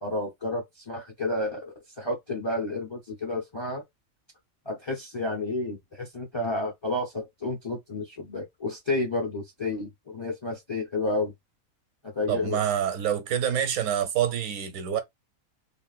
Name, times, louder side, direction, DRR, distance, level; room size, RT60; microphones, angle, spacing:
voice 1, 0.0-3.8 4.7-11.3 12.1-12.6, left 2 dB, 30° left, 0.6 m, -31 dB
voice 2, 12.3-15.0, right 9 dB, 75° right, 1.1 m, -27 dB
3.5 x 2.4 x 2.3 m
omnidirectional pair, 1.5 m